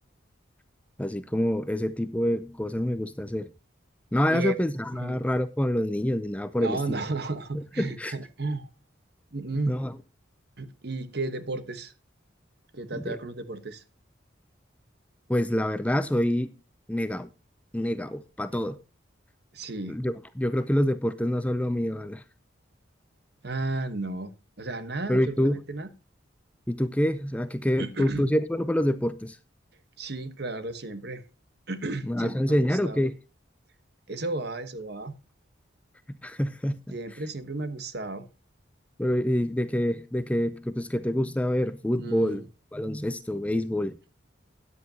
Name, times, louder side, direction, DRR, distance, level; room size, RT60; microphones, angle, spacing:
voice 1, 1.0-3.5 4.1-7.0 7.5-8.1 9.7-9.9 12.9-13.2 15.3-16.5 16.9-17.3 17.7-18.8 19.9-22.2 25.1-25.6 26.7-29.4 32.1-33.1 36.2-36.8 39.0-42.4 42.7-44.0, equal, 5° left, 0.5 m, -26 dB
voice 2, 4.9-5.2 6.6-8.7 9.3-9.8 10.6-11.9 12.7-13.8 19.5-20.0 23.4-24.3 24.6-25.9 27.8-28.3 30.0-31.2 31.7-33.0 34.1-35.1 36.9-38.2 42.0-42.4, right 2 dB, 55° right, 1.2 m, -33 dB
13.5 x 9.7 x 2.8 m
head